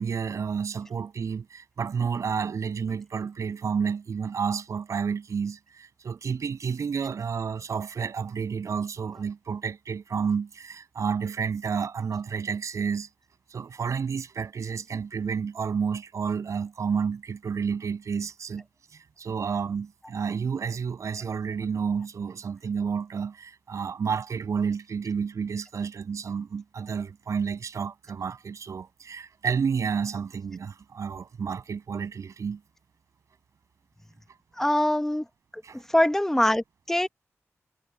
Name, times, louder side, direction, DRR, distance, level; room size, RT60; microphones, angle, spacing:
voice 1, 0.0-13.1 13.5-18.6 18.9-32.6 35.6-35.8, right 6 dB, 85° right, 7.9 m, -30 dB
voice 2, 34.6-35.2 35.9-37.1, left 1 dB, 10° left, 1.3 m, -23 dB
wide cardioid pair, 155°, 5 cm